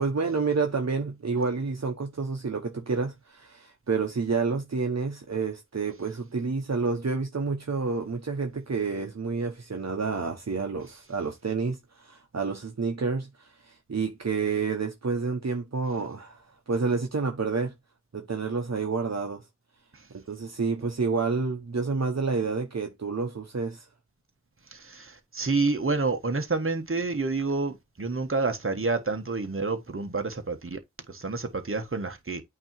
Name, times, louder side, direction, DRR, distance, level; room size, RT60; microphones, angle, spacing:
voice 1, 0.0-11.8 12.0-13.3 13.6-17.7 18.1-19.4 20.1-23.9, right 4 dB, 60° right, 1.0 m, -29 dB
voice 2, 24.7-30.8 31.1-32.4, right 3 dB, 45° right, 1.3 m, -28 dB
8.5 x 2.9 x 4.6 m
wide cardioid pair, 50°, 29 cm